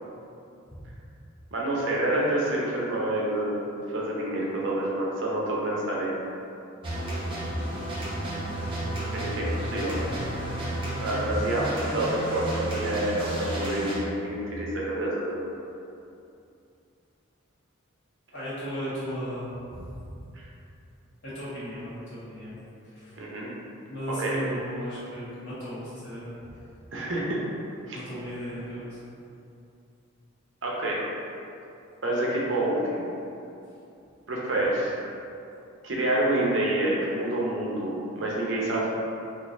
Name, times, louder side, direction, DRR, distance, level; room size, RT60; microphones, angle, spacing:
voice 1, 1.5-3.6 3.9-6.2 9.1-10.0 10.9-15.5 20.3-20.4 23.2-23.5 24.2-24.4 26.9-27.5 27.9-28.0 30.6-31.0 32.0-33.1 34.3-34.9 35.8-38.9, right 1 dB, 65° right, -4 dB, 0.7 m, -28 dB
sound 1, 6.8-14.0, right 1 dB, 25° right, 0.6 m, -32 dB
voice 2, 7.3-8.1 9.9-10.2 18.3-20.2 21.2-22.5 22.8-23.2 23.9-26.6 27.9-29.0 33.8-33.9 34.5-34.6, equal, 60° left, -11 dB, 1.5 m, -36 dB
3.8 x 3.0 x 2.6 m, 2.6 s
head